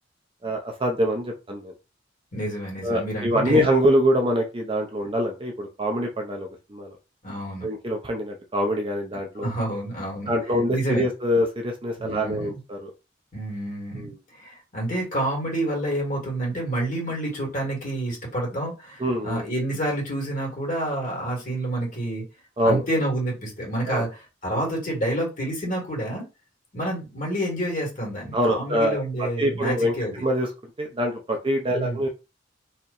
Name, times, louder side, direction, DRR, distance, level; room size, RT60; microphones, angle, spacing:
voice 1, 0.4-1.7 2.8-6.9 7.6-9.5 10.3-12.9 14.0-14.2 19.0-19.4 22.6-22.8 23.9-24.1 28.3-29.9 30.2-30.5 30.8-32.1, equal, 30° right, 3 dB, 0.6 m, -24 dB
voice 2, 2.3-3.7 7.2-7.7 9.4-10.3 10.7-11.1 12.0-12.6 13.3-22.2 22.6-26.3 26.7-30.2 31.7-32.0, right 1 dB, 45° left, -1 dB, 2.1 m, -28 dB
4.3 x 2.9 x 2.6 m, 0.28 s
head